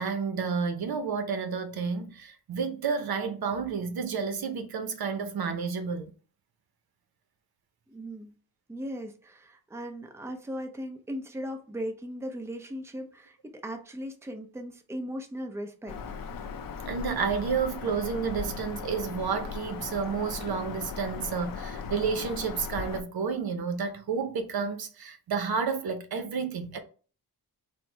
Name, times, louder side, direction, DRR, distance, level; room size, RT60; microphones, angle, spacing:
voice 1, 0.0-6.1 16.9-26.8, right 5 dB, 70° right, 0.7 m, -30 dB
voice 2, 7.9-8.4 8.7-16.2, equal, 5° right, 0.6 m, -38 dB
Bird vocalization bird call bird song, 15.9-23.0, left 5 dB, 60° left, 0.5 m, -38 dB
4.4 x 2.1 x 4.4 m
wide cardioid pair, 110°, 38 cm